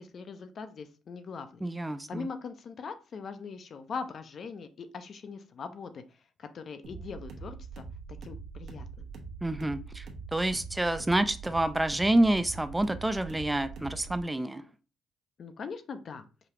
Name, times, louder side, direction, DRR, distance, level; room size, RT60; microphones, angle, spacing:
voice 1, 0.0-1.6 2.1-6.0 6.4-7.8 8.2-9.1 15.4-16.2, left 5 dB, 55° left, 0.5 m, -41 dB
voice 2, 1.6-2.3 9.4-10.1 10.3-14.6, right 1 dB, 10° right, 0.3 m, -28 dB
sound 1, 6.8-14.2, right 5 dB, 75° right, 0.9 m, -43 dB
4.9 x 2.4 x 2.9 m
cardioid pair, 90°, 0 cm